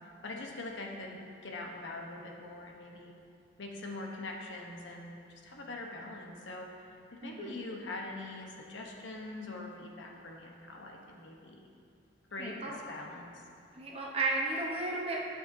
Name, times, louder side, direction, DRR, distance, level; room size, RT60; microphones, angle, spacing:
voice 1, 0.2-3.1 3.6-5.1 5.4-11.7 12.3-13.3, left 2 dB, 80° left, 0 dB, 0.9 m, -43 dB
voice 2, 7.2-7.5 12.4-12.8 13.7-15.2, right 2 dB, 30° right, -2 dB, 0.9 m, -34 dB
11.5 x 6.4 x 2.7 m, 2.5 s
head